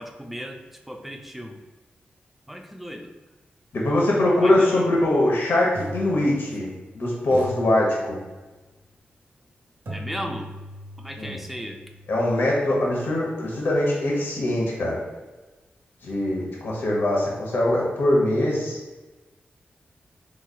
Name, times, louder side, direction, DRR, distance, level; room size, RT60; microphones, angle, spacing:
voice 1, 0.0-1.6 2.5-3.1 4.4-4.9 9.9-10.5 11.0-11.8, equal, 5° right, 3 dB, 0.4 m, -36 dB
voice 2, 3.7-6.7 6.9-8.2 11.2-11.4 12.1-15.0 16.0-18.8, left 1 dB, 75° left, -3 dB, 0.9 m, -22 dB
sound 1, 4.8-4.9 5.8-6.9 7.3-8.6 9.9-13.8, equal, 85° right, 0.9 m, -40 dB
3.7 x 3.1 x 2.2 m, 1.2 s
cardioid pair, 70°, 4 cm